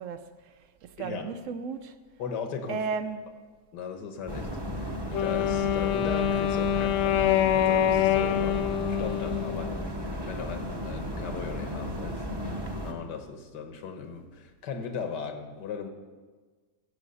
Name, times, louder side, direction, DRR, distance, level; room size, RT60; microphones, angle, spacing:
voice 1, 0.0-2.0 2.7-3.2, right 5 dB, 70° right, 0.7 m, -35 dB
voice 2, 1.0-1.3 2.2-2.8 3.7-4.5 4.7-12.2 12.8-15.9, left 6 dB, 90° left, 1.7 m, -38 dB
sound 1, 4.3-12.9, equal, 20° right, 0.8 m, -34 dB
Wind instrument woodwind instrument, 5.1-10.2, left 11 dB, 70° left, 0.7 m, -26 dB
15.0 x 7.1 x 5.5 m
omnidirectional pair, 1.8 m